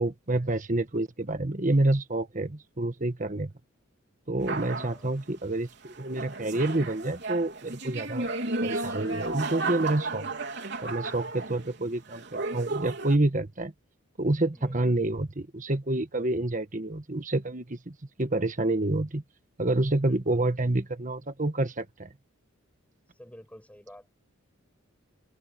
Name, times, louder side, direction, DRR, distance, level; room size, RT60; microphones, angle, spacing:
voice 1, 0.0-3.5 4.3-10.3 10.8-13.7 14.2-19.2 19.6-22.1, right 2 dB, 40° right, 1.5 m, -28 dB
sound 1, 4.4-5.0 5.9-11.8 12.1-13.2, right 3 dB, 55° right, 4.0 m, -34 dB
voice 2, 4.7-5.2 14.5-14.8 19.9-20.5 23.2-24.1, equal, 5° left, 6.7 m, -50 dB
head